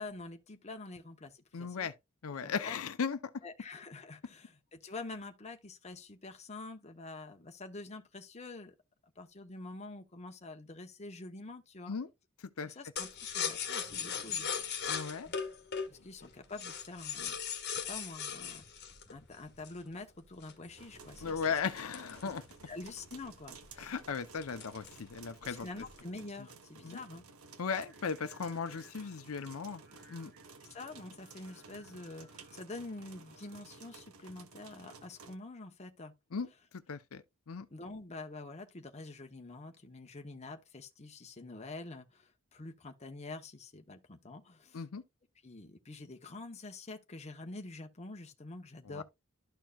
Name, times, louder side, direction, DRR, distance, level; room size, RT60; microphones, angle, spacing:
voice 1, 0.0-1.9 2.4-2.8 3.4-8.7 9.2-12.0 12.7-14.5 15.9-17.4 17.6-18.6 19.1-21.4 22.7-23.9 25.4-27.2 30.6-36.1 37.7-44.8 45.4-49.0, left 2 dB, 30° left, 0.9 m, -46 dB
voice 2, 1.5-1.9 2.2-3.2 11.9-12.1 12.6-12.7 14.9-15.3 21.2-22.4 23.8-25.7 26.8-27.0 27.6-29.8 30.1-30.3 36.3-36.5 36.9-37.7 44.7-45.0 48.9-49.0, left 5 dB, 80° left, 0.6 m, -37 dB
sound 1, 13.0-19.9 20.4-22.9 23.2-23.3 23.6-24.0 24.4-25.1 25.4-26.0, left 7 dB, 50° left, 1.4 m, -38 dB
sound 2, 20.8-35.4, right 4 dB, 90° right, 1.0 m, -55 dB
Singing, 27.7-34.0, right 2 dB, 45° right, 2.0 m, -63 dB
12.5 x 4.5 x 2.3 m
head